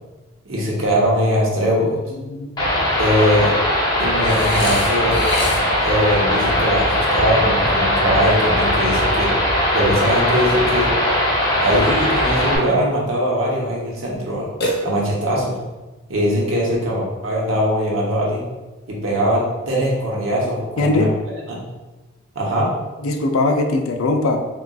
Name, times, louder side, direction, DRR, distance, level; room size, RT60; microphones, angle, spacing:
voice 1, 0.4-2.0 3.0-3.5 4.0-5.2 5.5-9.3 9.7-10.9 11.6-14.5 14.8-15.6 16.1-18.4 18.9-21.1 21.5-21.6 22.3-22.7, equal, 80° right, -3 dB, 0.9 m, -21 dB
voice 2, 2.2-2.5 20.8-21.2 23.0-24.4, left 2 dB, 85° left, 5 dB, 0.4 m, -20 dB
sound 1, 2.6-12.6, left 1 dB, 20° left, 0.6 m, -19 dB
Burping eructation, 4.2-5.9 14.6-15.4, left 1 dB, 50° left, 0.7 m, -25 dB
3.8 x 2.4 x 2.3 m, 1.2 s
head